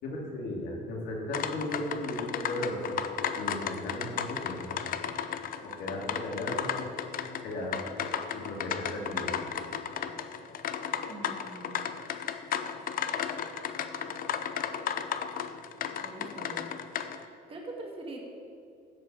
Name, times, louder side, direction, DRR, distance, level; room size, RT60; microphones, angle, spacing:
voice 1, 0.0-3.0 3.4-4.8 5.6-6.8 7.4-7.8 8.3-9.5, left 1 dB, 75° left, -2 dB, 3.0 m, -36 dB
sound 1, 1.3-17.2, left 8 dB, 55° left, 0.7 m, -34 dB
voice 2, 11.1-12.0 16.0-16.6 17.5-18.2, right 2 dB, 35° right, 0 dB, 1.9 m, -43 dB
14.0 x 4.7 x 8.7 m, 2.5 s
cardioid pair, 110°, 17 cm